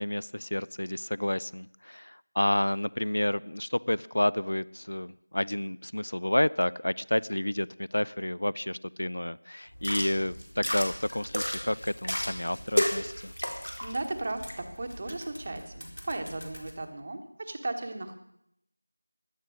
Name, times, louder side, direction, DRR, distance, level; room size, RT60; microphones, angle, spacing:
voice 1, 0.0-13.3, left 1 dB, 65° left, 19 dB, 0.5 m, -30 dB
sound 1, 9.7-16.7, equal, 85° left, 4.1 m, -34 dB
voice 2, 13.8-18.1, right 2 dB, 20° right, 6 dB, 1.2 m, -36 dB
16.5 x 12.0 x 6.3 m, 0.76 s
figure-of-eight pair, 175°, 0 cm